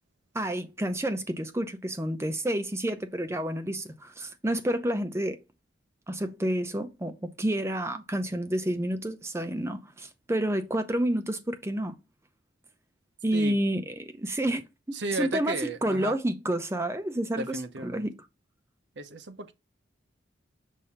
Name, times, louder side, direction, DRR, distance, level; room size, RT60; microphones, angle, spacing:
voice 1, 0.3-5.4 6.1-12.0 13.2-18.1, right 1 dB, 15° right, 0.5 m, -29 dB
voice 2, 14.9-16.1 17.4-18.0 19.0-19.5, right 2 dB, 75° right, 0.8 m, -34 dB
6.5 x 2.7 x 5.5 m
head